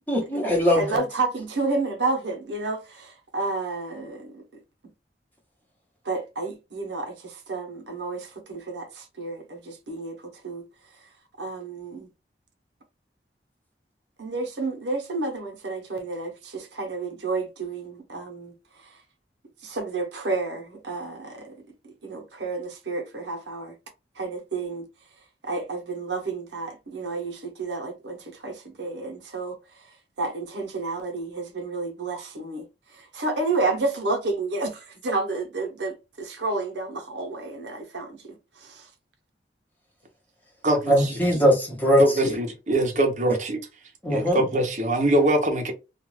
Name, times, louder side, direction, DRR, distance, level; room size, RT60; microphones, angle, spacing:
voice 1, 0.1-1.0 40.9-42.4 43.3-43.4 44.0-44.4, equal, 10° left, 0.9 m, -21 dB
voice 2, 0.7-4.4 6.0-10.6 11.4-12.1 14.2-18.9 19.6-21.6 21.8-23.7 24.2-24.9 25.4-29.8 30.2-32.7 32.9-38.9, right 3 dB, 85° right, 0.9 m, -31 dB
voice 3, 40.6-41.1 42.0-43.6 44.1-45.7, right 1 dB, 40° right, 0.7 m, -23 dB
2.4 x 2.3 x 3.1 m
head